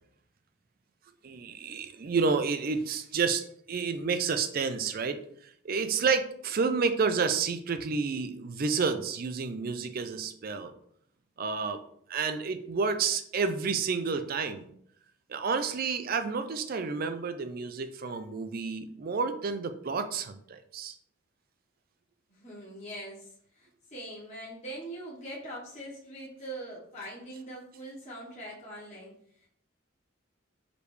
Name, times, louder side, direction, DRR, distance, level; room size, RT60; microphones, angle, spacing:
voice 1, 1.2-10.7 11.4-11.8 12.1-14.7 15.3-21.0, right 5 dB, 45° right, 9 dB, 0.4 m, -30 dB
voice 2, 22.3-23.3 23.6-29.1, right 1 dB, 35° left, -8 dB, 1.3 m, -42 dB
4.9 x 3.3 x 3.3 m, 0.66 s
head